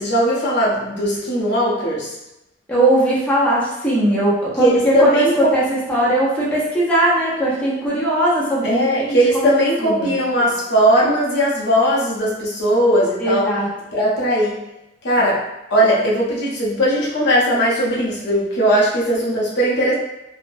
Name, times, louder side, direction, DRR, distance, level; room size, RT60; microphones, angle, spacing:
voice 1, 0.0-2.1 4.6-5.5 8.6-13.5 13.9-14.6 15.0-15.4 15.7-19.9, equal, 65° left, -5 dB, 0.7 m, -18 dB
voice 2, 2.7-9.5 9.8-10.1 13.2-13.7, right 1 dB, 5° left, -8 dB, 0.7 m, -19 dB
3.2 x 2.1 x 2.6 m, 0.90 s
head